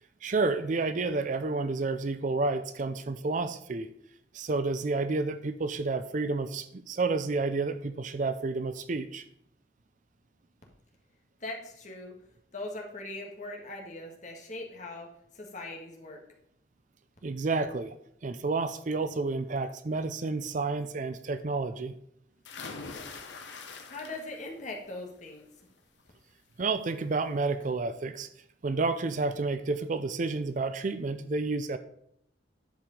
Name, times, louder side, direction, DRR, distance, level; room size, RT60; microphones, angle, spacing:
voice 1, 0.2-3.9 4.3-9.2 17.2-17.9 18.2-22.0 26.6-28.3 28.6-31.8, right 3 dB, 45° right, 12 dB, 0.5 m, -30 dB
voice 2, 11.4-12.1 12.5-15.1 15.3-16.2 23.9-25.5, left 2 dB, 40° left, 0 dB, 1.7 m, -40 dB
sound 1, 22.4-24.5 24.9-25.4 26.8-26.9 27.2-27.3, left 4 dB, 80° left, 1.2 m, -43 dB
10.5 x 4.8 x 5.2 m, 0.73 s
head